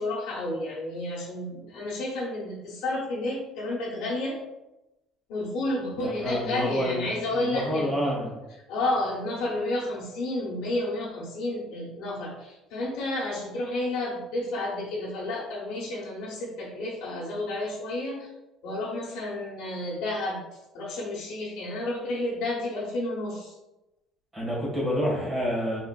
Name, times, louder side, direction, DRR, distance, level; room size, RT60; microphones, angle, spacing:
voice 1, 0.0-4.4 5.3-8.0 8.7-18.3 18.6-20.4 20.7-23.5, left 2 dB, 80° left, -6 dB, 1.0 m, -31 dB
voice 2, 6.0-8.3 24.3-25.8, equal, 15° right, -4 dB, 1.3 m, -28 dB
3.8 x 3.3 x 2.2 m, 0.97 s
cardioid pair, 155°, 0 cm